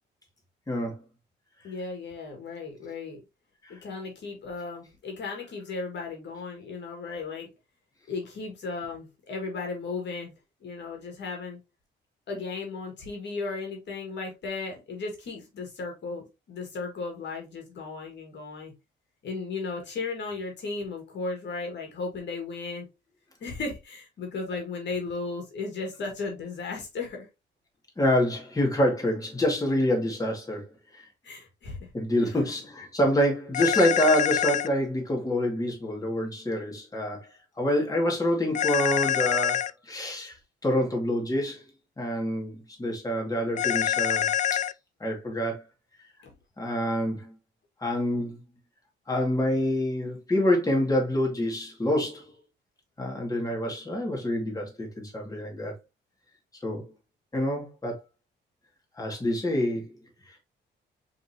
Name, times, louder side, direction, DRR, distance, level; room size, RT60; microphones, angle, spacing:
voice 1, 0.7-1.0 3.6-3.8 28.0-30.6 30.9-31.1 31.9-37.3 37.6-40.4 40.6-41.6 42.0-44.6 45.0-45.6 46.6-47.3 47.8-48.4 49.1-52.3 53.0-55.7 56.6-56.9 57.3-58.0 59.0-59.9, equal, 15° left, 2.2 m, -27 dB
voice 2, 1.6-3.2 3.7-7.5 8.1-10.3 10.6-11.6 12.3-18.7 19.2-22.9 23.4-27.3 31.2-31.9 32.3-32.4 46.2-46.3, left 4 dB, 65° left, 1.9 m, -35 dB
sound 1, 33.5-34.7 38.5-39.7 43.6-44.7, left 10 dB, 40° left, 0.4 m, -25 dB
4.9 x 3.7 x 2.8 m
cardioid pair, 90°, 20 cm